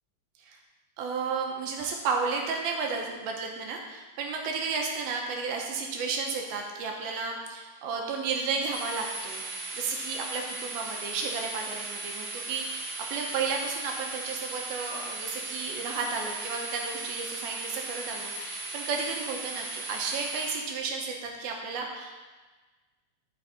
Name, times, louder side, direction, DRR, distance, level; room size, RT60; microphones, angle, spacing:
voice 1, 1.0-22.1, right 4 dB, 80° right, 0 dB, 2.8 m, -33 dB
sound 1, 8.7-20.6, right 3 dB, 60° right, 3.9 m, -37 dB
11.5 x 5.4 x 4.1 m, 1.3 s
omnidirectional pair, 4.3 m